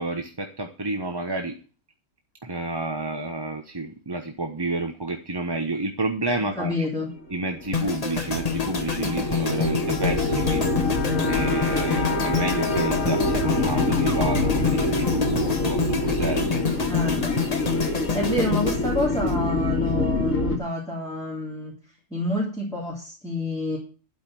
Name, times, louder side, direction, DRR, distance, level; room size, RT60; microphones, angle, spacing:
voice 1, 0.0-1.6 2.4-6.9 7.3-10.7 11.3-16.6 18.2-18.3, right 2 dB, 20° right, 4 dB, 1.0 m, -30 dB
voice 2, 6.6-7.1 16.7-17.3 18.1-21.7 22.1-23.8, left 1 dB, 5° left, -4 dB, 3.3 m, -28 dB
sound 1, 7.1-20.6, left 2 dB, 75° left, 2.7 m, -26 dB
sound 2, 7.7-19.9 20.2-20.5, left 6 dB, 30° left, 1.3 m, -28 dB
12.0 x 5.3 x 7.6 m, 0.36 s
omnidirectional pair, 1.4 m